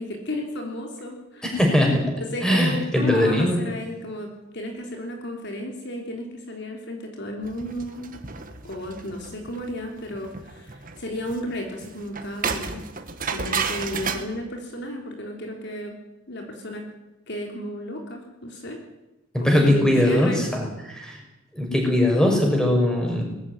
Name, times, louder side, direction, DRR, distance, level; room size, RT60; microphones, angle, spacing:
voice 1, 0.0-1.6 2.2-8.2 8.6-12.9 13.3-16.0 16.3-16.8 17.3-18.8 19.4-20.5, left 1 dB, 50° left, 2 dB, 3.4 m, -33 dB
voice 2, 1.4-2.0 2.4-3.6 19.3-20.6 20.9-21.2 21.5-23.2, left 1 dB, 5° left, 0 dB, 6.1 m, -20 dB
sound 1, 7.4-14.2, right 5 dB, 40° right, 1.8 m, -32 dB
21.0 x 14.5 x 9.6 m, 0.98 s
head